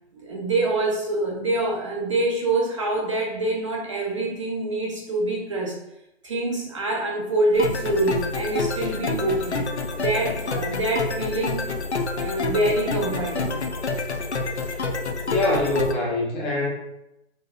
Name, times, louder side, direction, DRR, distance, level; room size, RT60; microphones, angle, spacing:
voice 1, 0.1-5.8 6.2-9.7 10.0-11.7 12.1-13.6, right 2 dB, 30° right, -1 dB, 0.4 m, -25 dB
sound 1, 7.5-15.9, left 3 dB, 85° left, 0.6 m, -28 dB
voice 2, 15.3-16.7, left 2 dB, 15° left, -3 dB, 0.6 m, -23 dB
4.2 x 3.3 x 2.6 m, 0.85 s
figure-of-eight pair, 130°, 33 cm